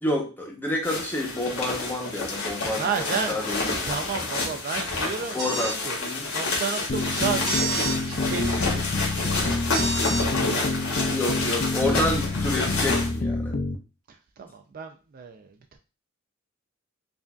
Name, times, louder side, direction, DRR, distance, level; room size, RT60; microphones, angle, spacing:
voice 1, 0.0-3.9 5.3-6.2 10.7-13.6, left 1 dB, 10° left, -1 dB, 0.8 m, -29 dB
sound 1, 0.8-13.1, left 3 dB, 75° left, 1.1 m, -29 dB
voice 2, 2.8-6.0 6.3-9.9 10.4-11.2 14.1-15.8, right 6 dB, 45° right, 6 dB, 0.3 m, -33 dB
sound 2, 5.4-5.8 7.4-8.0 9.7-10.2, right 3 dB, 60° right, 1.5 m, -29 dB
sound 3, 6.9-13.8, left 2 dB, 40° left, 0.4 m, -28 dB
4.7 x 2.6 x 2.3 m, 0.32 s
head